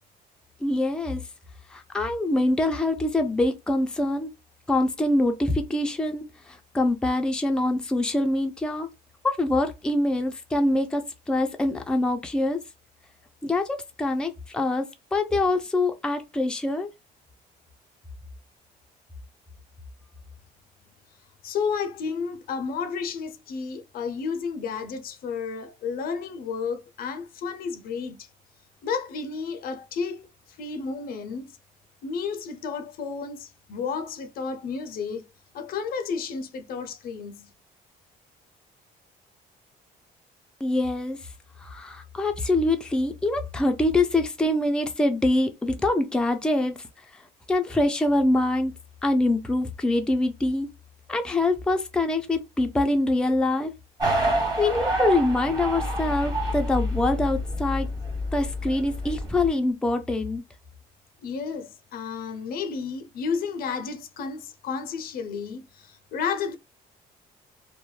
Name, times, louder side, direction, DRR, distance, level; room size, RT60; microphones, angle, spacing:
voice 1, 0.6-1.2 1.7-4.3 4.7-8.9 9.2-12.6 13.4-16.9 40.6-41.3 41.6-46.8 47.1-47.2 47.5-48.7 49.0-50.7 51.1-53.7 54.6-57.9 58.3-60.4, left 2 dB, 5° left, 0.4 m, -24 dB
voice 2, 21.4-28.3 28.8-30.3 30.6-31.6 32.0-35.3 35.5-37.5 61.2-66.6, left 5 dB, 60° left, 0.5 m, -32 dB
sound 1, 54.0-59.5, equal, 25° right, 1.2 m, -28 dB
2.3 x 2.1 x 3.0 m
cardioid pair, 110°, 17 cm